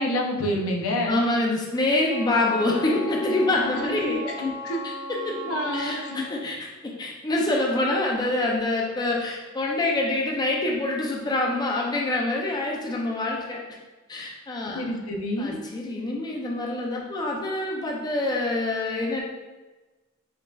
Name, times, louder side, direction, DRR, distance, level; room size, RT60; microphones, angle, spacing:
voice 1, 0.0-1.3 3.7-4.9 5.5-6.3 14.7-15.6, left 1 dB, 85° left, 1 dB, 0.5 m, -28 dB
voice 2, 1.1-4.3 4.8-5.4 5.7-13.6 14.1-14.8 15.4-19.2, left 2 dB, 20° left, -1 dB, 0.4 m, -26 dB
Wind instrument woodwind instrument, 2.1-6.4, equal, 35° right, 0.7 m, -37 dB
5.0 x 2.6 x 2.2 m, 1.2 s
head